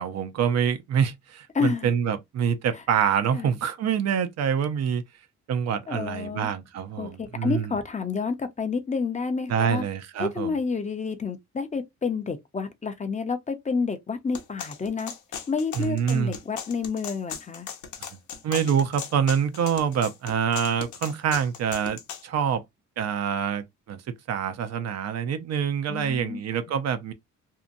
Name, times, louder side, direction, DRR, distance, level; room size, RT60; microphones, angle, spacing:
voice 1, 0.0-5.0 5.5-7.7 9.5-10.6 15.7-16.4 18.4-22.6 23.0-27.1, right 7 dB, 60° right, 0.5 m, -26 dB
voice 2, 1.5-1.9 3.3-3.5 5.9-6.5 7.0-9.8 10.2-15.1 15.5-17.7 25.9-26.4, left 5 dB, 25° left, 0.6 m, -29 dB
sound 1, 14.3-22.2, left 7 dB, 75° left, 0.8 m, -38 dB
2.7 x 2.1 x 2.5 m
cardioid pair, 90°, 30 cm